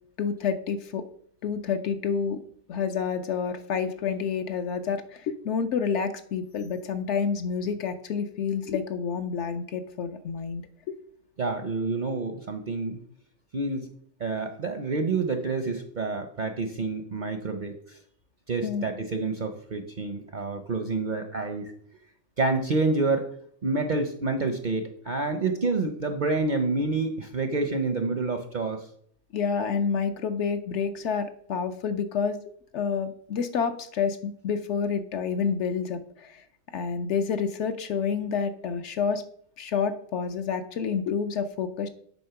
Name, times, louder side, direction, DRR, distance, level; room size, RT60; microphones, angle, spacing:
voice 1, 0.2-1.1 1.4-2.4 2.7-11.0 18.6-18.9 29.3-32.4 32.7-36.4 36.7-39.2 39.6-41.9, left 6 dB, 65° left, 9 dB, 0.8 m, -29 dB
voice 2, 11.4-13.0 13.5-13.9 14.2-18.0 18.5-21.7 22.4-23.3 23.6-28.9, right 3 dB, 50° right, 6 dB, 0.6 m, -28 dB
8.5 x 3.6 x 5.7 m, 0.63 s
omnidirectional pair, 1.4 m